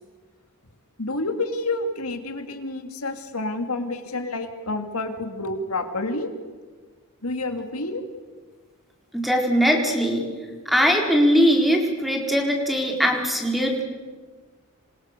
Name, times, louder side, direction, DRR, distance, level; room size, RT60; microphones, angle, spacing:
voice 1, 1.0-6.3 7.2-8.0, left 2 dB, 85° left, 7 dB, 2.7 m, -29 dB
voice 2, 9.1-10.2 10.7-13.8, equal, ahead, 1 dB, 4.4 m, -20 dB
27.0 x 26.5 x 6.9 m, 1.4 s
head